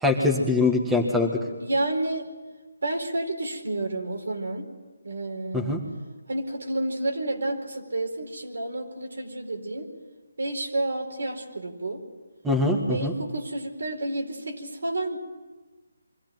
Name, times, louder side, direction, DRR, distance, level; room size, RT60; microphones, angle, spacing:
voice 1, 0.0-1.4 5.5-5.8 12.4-13.1, left 2 dB, 5° right, 4 dB, 1.9 m, -23 dB
voice 2, 1.6-2.3 2.8-4.7 5.0-5.8 6.3-9.9 10.4-12.0 12.9-15.2, right 2 dB, 75° right, 3 dB, 4.6 m, -30 dB
24.0 x 15.5 x 9.4 m, 1.2 s
hypercardioid pair, 160°, 0 cm